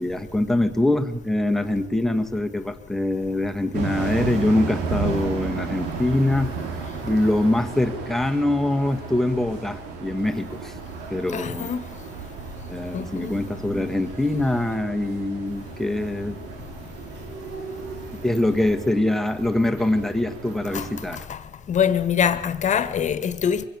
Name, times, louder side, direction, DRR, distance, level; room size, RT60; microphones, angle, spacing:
voice 1, 0.0-6.5 7.0-10.8 11.1-11.7 12.7-16.4 18.1-21.3, left 1 dB, ahead, 1.7 m, -24 dB
sound 1, 3.7-21.2, right 5 dB, 90° right, 3.3 m, -34 dB
voice 2, 11.3-11.8 12.9-13.3 20.7-20.9 21.3-21.4 21.7-23.7, left 8 dB, 45° left, 1.7 m, -23 dB
23.0 x 17.5 x 7.1 m
cardioid pair, 110°, 17 cm